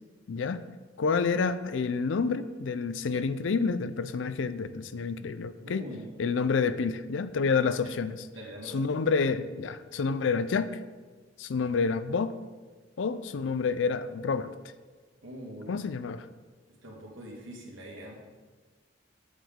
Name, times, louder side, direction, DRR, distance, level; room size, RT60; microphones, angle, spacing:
voice 1, 0.3-0.6 1.0-5.9 6.2-8.3 8.7-10.8 11.4-12.4 13.0-14.5 15.7-16.3, left 5 dB, 70° left, 13 dB, 0.4 m, -29 dB
voice 2, 5.6-6.1 7.8-7.9 8.3-8.8 15.2-15.7 16.8-18.2, equal, 90° right, -2 dB, 2.0 m, -43 dB
8.6 x 7.2 x 3.7 m, 1.4 s
head